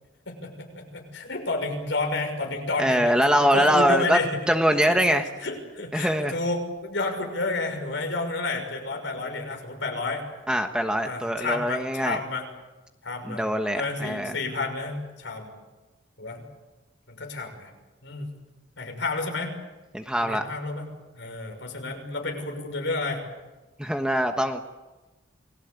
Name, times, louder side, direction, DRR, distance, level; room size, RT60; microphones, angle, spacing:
voice 1, 0.3-4.3 4.9-5.0 5.4-10.2 11.0-12.4 13.0-13.4 13.7-15.5 16.2-16.4 17.1-17.7 18.0-18.3 18.8-19.5 20.2-20.9 21.1-23.2, left 3 dB, 65° left, 3 dB, 6.2 m, -30 dB
voice 2, 2.8-4.2 4.5-5.3 5.9-6.3 10.5-12.2 13.2-14.3 19.9-20.4 23.8-24.6, equal, 5° right, 5 dB, 1.3 m, -23 dB
29.0 x 21.0 x 8.3 m, 1.1 s
head